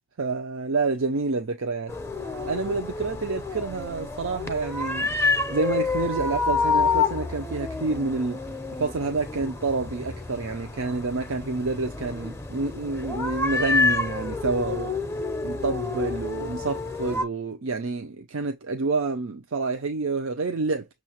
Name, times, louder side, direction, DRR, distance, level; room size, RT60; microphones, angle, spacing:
voice 1, 0.2-1.9 2.4-5.2 5.5-8.4 8.8-14.9 15.4-20.9, right 3 dB, 80° right, 0.6 m, -28 dB
sound 1, 1.9-17.2, left 4 dB, 10° left, 0.5 m, -28 dB
6.4 x 2.5 x 2.9 m
head